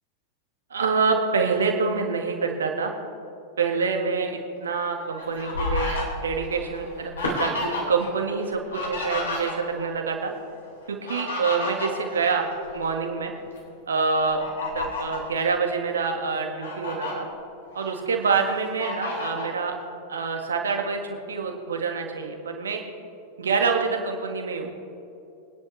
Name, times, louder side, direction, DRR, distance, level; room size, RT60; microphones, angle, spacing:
voice 1, 0.7-2.9 3.6-10.3 10.9-12.5 12.7-13.3 13.9-17.3 17.8-19.8 20.1-22.8 23.4-24.7, right 5 dB, 70° right, 3 dB, 1.7 m, -26 dB
Fowl, 4.8-8.1 8.4-9.9 10.8-12.9 13.4-13.6 14.2-15.3 15.9-16.0 16.4-17.1 17.7-18.4 18.8-19.5, left 2 dB, 65° left, 3.5 m, -31 dB
23.5 x 10.5 x 3.3 m, 2.8 s
figure-of-eight pair, 90°, 0 cm